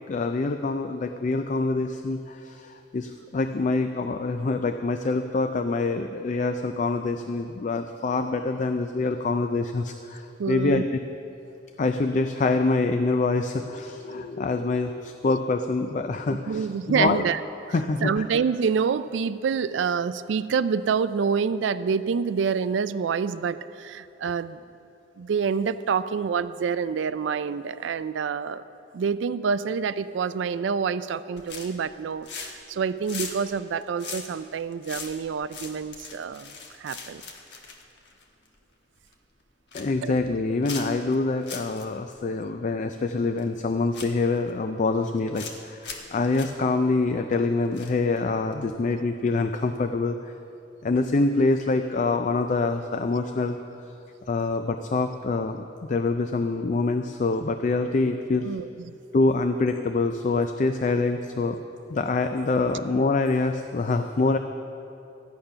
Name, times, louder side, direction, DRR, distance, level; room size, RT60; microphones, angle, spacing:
voice 1, 0.1-11.0 11.8-17.2 17.7-18.2 39.7-50.3 50.8-53.6 54.3-58.6 59.1-61.6 61.9-64.4, left 3 dB, 40° left, 7 dB, 0.4 m, -25 dB
voice 2, 10.4-10.8 14.1-14.3 16.5-17.4 18.0-24.6 25.2-28.6 28.9-36.5 36.8-37.2 40.0-40.2 58.4-59.0, right 6 dB, 75° right, 15 dB, 0.4 m, -27 dB
sound 1, 31.3-31.9 32.2-32.7 33.0-38.5 39.0-39.1 39.5-39.9 40.6-41.1 41.4-41.8 42.1-42.2 43.4-43.5 43.9-44.5 45.1-45.5 45.8-46.1 46.3-46.5 47.7-48.2 48.5-48.7, left 5 dB, 65° left, 1.3 m, -39 dB
13.5 x 8.9 x 5.7 m, 2.8 s
head